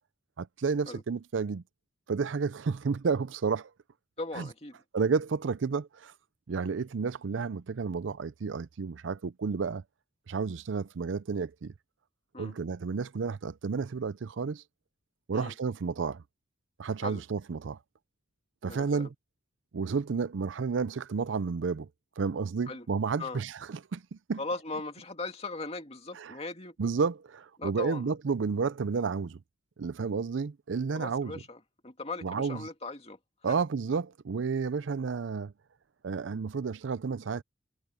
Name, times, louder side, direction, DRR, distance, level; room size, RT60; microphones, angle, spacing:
voice 1, 0.4-1.6 2.1-3.7 4.4-4.5 4.9-6.1 6.5-9.8 10.3-11.7 12.4-14.6 15.3-16.2 16.8-17.8 18.6-19.1 19.7-21.9 22.2-24.4 26.2-26.3 26.8-29.4 29.8-31.4 32.2-32.7 33.4-35.5 36.0-37.4, right 5 dB, 90° right, 0.5 m, -31 dB
voice 2, 4.2-4.8 12.3-12.5 15.3-15.5 17.0-17.2 18.7-19.1 22.7-22.9 23.2-23.4 24.4-26.8 27.6-28.1 30.9-33.2 33.5-33.6, left 3 dB, 35° left, 2.4 m, -39 dB
head